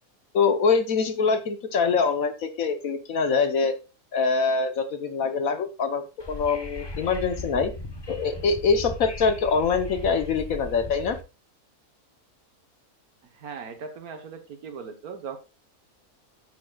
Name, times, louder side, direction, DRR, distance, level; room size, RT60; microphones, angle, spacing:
voice 1, 0.3-3.8 4.1-7.7 8.1-11.2, left 5 dB, 70° left, 8 dB, 1.3 m, -24 dB
Wind / Subway metro underground, 6.2-11.2, left 2 dB, 20° left, 0.8 m, -37 dB
voice 2, 13.3-15.4, right 6 dB, 90° right, 7 dB, 1.6 m, -38 dB
13.5 x 6.3 x 2.3 m, 0.29 s
omnidirectional pair, 1.5 m